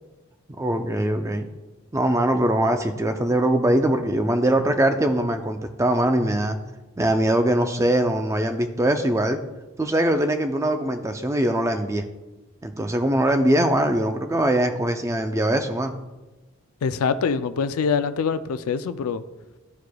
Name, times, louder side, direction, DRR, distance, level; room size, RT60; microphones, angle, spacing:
voice 1, 0.6-1.5 1.9-6.6 7.0-9.4 9.8-12.0 12.6-15.9, right 1 dB, 15° right, 7 dB, 0.4 m, -22 dB
voice 2, 16.8-19.2, left 5 dB, 90° left, 12 dB, 0.4 m, -24 dB
13.5 x 4.8 x 2.3 m, 1.1 s
head